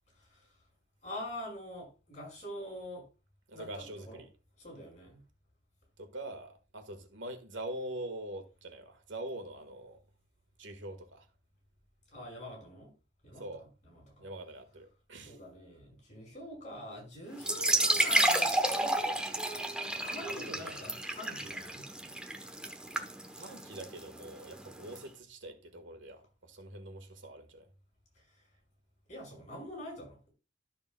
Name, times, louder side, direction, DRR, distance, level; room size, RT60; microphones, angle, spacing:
voice 1, 1.0-3.1 3.5-4.2 4.6-5.2 12.1-12.9 13.2-14.3 15.2-21.8 29.1-30.3, left 1 dB, 40° left, 5.7 m, -45 dB
voice 2, 3.5-4.3 6.0-10.0 10.6-11.3 13.4-13.7 14.2-15.4 20.3-20.8 23.4-27.7, right 1 dB, 90° right, 1.6 m, -44 dB
sound 1, 17.4-25.0, right 1 dB, 5° right, 0.9 m, -31 dB
12.5 x 6.8 x 2.3 m
head